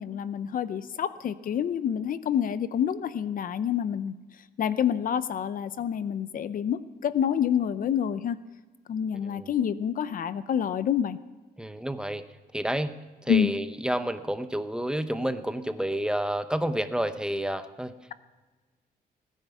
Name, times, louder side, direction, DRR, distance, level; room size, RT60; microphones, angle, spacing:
voice 1, 0.0-4.1 4.6-8.4 8.9-11.2 13.3-13.5, left 8 dB, 55° left, 14 dB, 0.6 m, -27 dB
voice 2, 11.6-12.2 12.5-12.9 13.2-17.9, right 1 dB, 5° right, 10 dB, 0.8 m, -29 dB
18.0 x 10.0 x 7.0 m, 1.3 s
cardioid pair, 120°, 17 cm